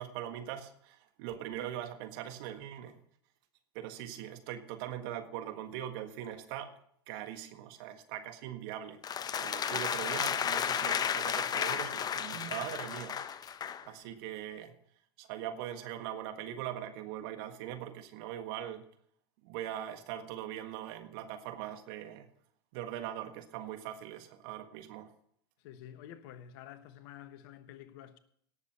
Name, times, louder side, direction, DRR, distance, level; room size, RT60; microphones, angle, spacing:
voice 1, 0.0-3.0 3.7-6.7 7.1-9.0 9.4-13.2 13.8-14.7 15.2-18.8 19.4-22.3 22.7-25.1, right 11 dB, 65° right, 1.6 m, -41 dB
sound 1, 9.0-13.9, left 8 dB, 30° left, 0.7 m, -33 dB
voice 2, 25.6-28.2, left 10 dB, 65° left, 1.2 m, -49 dB
18.0 x 7.3 x 5.7 m
hypercardioid pair, 85°, 13 cm